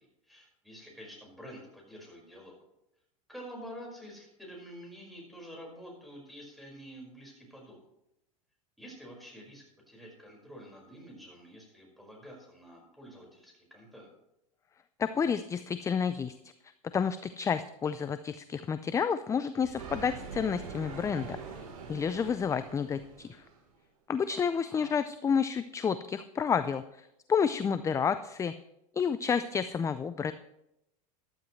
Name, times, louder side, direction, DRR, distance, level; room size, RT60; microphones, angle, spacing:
voice 1, 0.0-2.5 3.3-7.8 8.8-14.1 24.2-24.9, equal, ahead, -2 dB, 5.1 m, -48 dB
voice 2, 15.0-16.3 16.9-21.4 21.9-23.4 24.1-28.5 29.0-30.3, left 6 dB, 15° left, 12 dB, 0.4 m, -30 dB
sound 1, 19.6-22.3, right 5 dB, 55° right, 4.2 m, -51 dB
sound 2, 19.8-23.7, right 5 dB, 80° right, 3.6 m, -44 dB
14.0 x 12.0 x 3.2 m, 0.86 s
hypercardioid pair, 110°, 18 cm